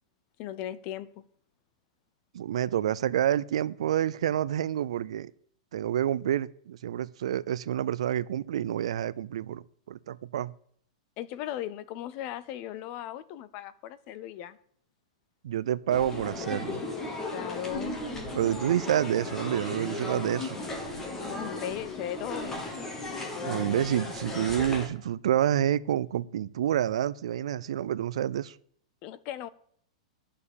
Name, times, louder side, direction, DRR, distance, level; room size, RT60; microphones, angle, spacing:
voice 1, 0.4-1.2 11.2-14.6 17.3-18.1 21.2-22.7 29.0-29.5, left 12 dB, 25° left, 0.5 m, -37 dB
voice 2, 2.3-5.3 5.7-10.5 15.4-16.8 18.3-20.6 23.4-28.6, right 11 dB, 60° right, 0.5 m, -28 dB
sound 1, 15.9-24.9, left 2 dB, 10° left, 1.3 m, -36 dB
11.0 x 6.7 x 7.0 m
supercardioid pair, 180°, 4 cm